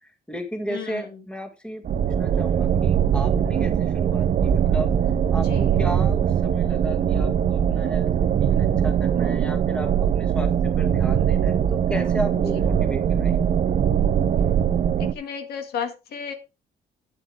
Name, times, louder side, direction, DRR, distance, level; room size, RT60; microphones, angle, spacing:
voice 1, 0.0-5.0 5.3-13.4, equal, 5° left, 5 dB, 2.0 m, -34 dB
voice 2, 0.7-1.2 5.4-5.8 12.4-12.6 15.0-16.3, left 7 dB, 80° left, 6 dB, 2.0 m, -33 dB
sound 1, 1.8-15.1, right 8 dB, 50° right, 0.8 m, -21 dB
10.5 x 9.4 x 3.5 m, 0.27 s
cardioid pair, 140°, 16 cm